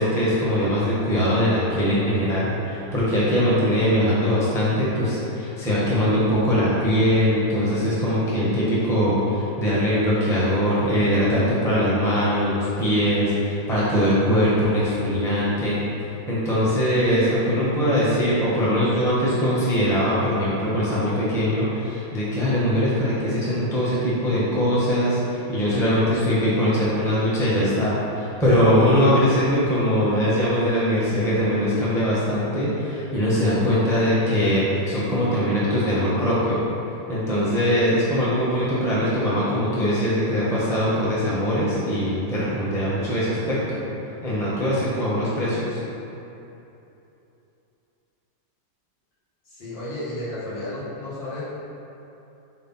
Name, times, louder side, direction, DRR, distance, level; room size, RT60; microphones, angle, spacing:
voice 1, 0.0-15.8 16.3-36.6 37.1-43.8 44.2-45.8, equal, ahead, -9 dB, 1.0 m, -21 dB
voice 2, 35.8-36.1 49.5-51.4, left 1 dB, 70° left, -9 dB, 2.3 m, -34 dB
4.6 x 4.5 x 5.6 m, 2.9 s
omnidirectional pair, 2.2 m